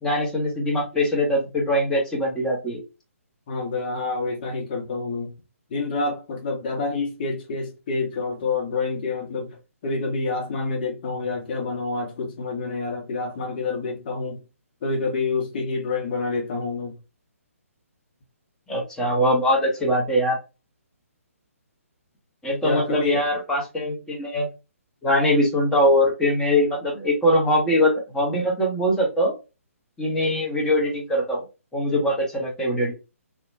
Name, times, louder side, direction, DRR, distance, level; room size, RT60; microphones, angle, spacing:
voice 1, 0.0-2.8 18.7-20.4 22.4-24.5 25.0-29.3 30.0-31.4 31.7-32.9, equal, 5° left, 0.8 m, -22 dB
voice 2, 3.5-5.3 5.7-14.4 14.8-17.0 22.6-23.2, left 3 dB, 40° left, 0.8 m, -28 dB
2.8 x 2.1 x 2.6 m
figure-of-eight pair, 135°, 8 cm